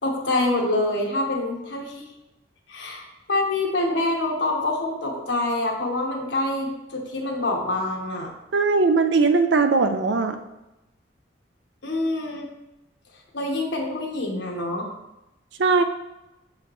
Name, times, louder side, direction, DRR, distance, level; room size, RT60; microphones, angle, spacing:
voice 1, 0.0-2.1 2.7-8.3 11.8-12.5 13.3-14.9, left 2 dB, 85° left, 0 dB, 1.3 m, -26 dB
voice 2, 8.5-10.4 15.6-15.8, right 4 dB, 75° right, 7 dB, 0.5 m, -19 dB
7.0 x 4.8 x 3.1 m, 0.93 s
head